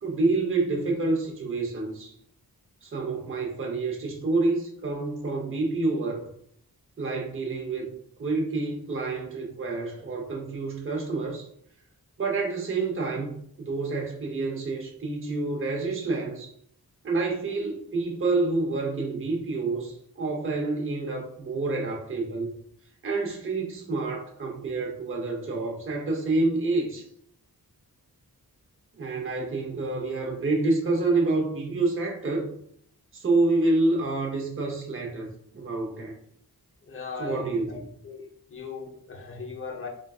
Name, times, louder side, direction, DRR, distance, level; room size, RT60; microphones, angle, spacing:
voice 1, 0.0-2.1 2.8-6.2 7.0-7.9 8.2-11.5 12.2-16.5 17.0-22.6 23.0-27.1 28.9-32.5 33.1-35.3 35.5-36.2 37.2-37.8, right 3 dB, 35° right, 0 dB, 0.7 m, -28 dB
voice 2, 36.8-37.8 38.0-38.2 38.5-39.9, left 4 dB, 35° left, 1 dB, 0.6 m, -38 dB
3.8 x 2.3 x 2.3 m, 0.66 s
wide cardioid pair, 85°, 37 cm